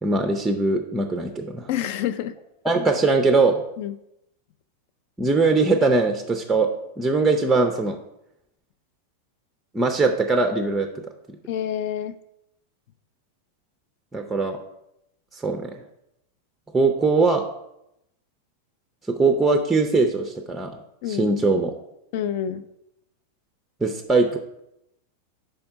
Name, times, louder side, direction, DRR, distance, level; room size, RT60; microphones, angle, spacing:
voice 1, 0.0-1.7 2.6-3.6 5.2-6.7 7.0-8.0 9.7-10.9 14.1-14.6 15.3-15.7 16.7-17.4 19.1-20.8 21.1-21.7 23.8-24.4, right 3 dB, 10° right, 5 dB, 0.5 m, -21 dB
voice 2, 1.7-2.4 3.8-4.0 11.5-12.1 21.0-21.3 22.1-22.6, left 10 dB, 50° left, 13 dB, 0.4 m, -27 dB
5.5 x 4.3 x 5.7 m, 0.84 s
figure-of-eight pair, 90°, 0 cm